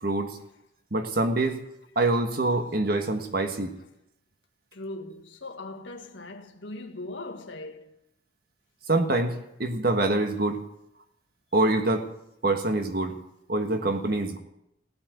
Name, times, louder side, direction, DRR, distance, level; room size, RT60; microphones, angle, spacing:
voice 1, 0.0-0.4 0.9-1.6 1.9-3.7 8.9-10.6 11.5-12.0 12.4-13.1 13.5-14.4, right 2 dB, 50° right, 1.5 m, -25 dB
voice 2, 4.7-8.0, left 2 dB, 80° left, 1.6 m, -39 dB
17.5 x 8.7 x 8.0 m
head